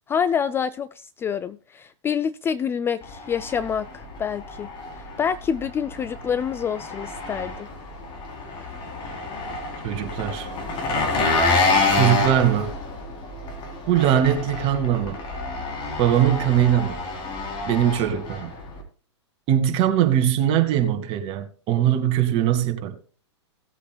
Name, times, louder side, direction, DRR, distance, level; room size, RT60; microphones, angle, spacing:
voice 1, 0.1-4.7 5.0-7.7, left 7 dB, 15° left, 0.4 m, -27 dB
Engine, 3.0-18.8, left 3 dB, 30° left, 3.5 m, -28 dB
voice 2, 9.8-10.5 11.9-12.7 13.9-15.2 16.0-17.0 17.7-18.5 19.5-22.9, right 10 dB, 35° right, 2.2 m, -21 dB
18.5 x 8.3 x 2.3 m
hypercardioid pair, 115°, 15 cm